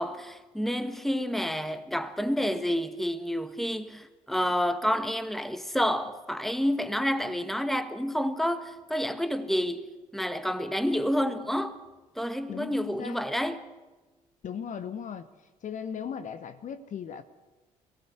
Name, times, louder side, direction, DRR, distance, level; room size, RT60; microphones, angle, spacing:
voice 1, 0.0-11.9 12.1-13.7, equal, ahead, 1.7 m, -29 dB
voice 2, 12.5-13.2 14.4-15.3 15.6-17.2, left 7 dB, 45° left, 1.0 m, -37 dB
23.5 x 17.0 x 8.1 m
figure-of-eight pair, 45°, 18 cm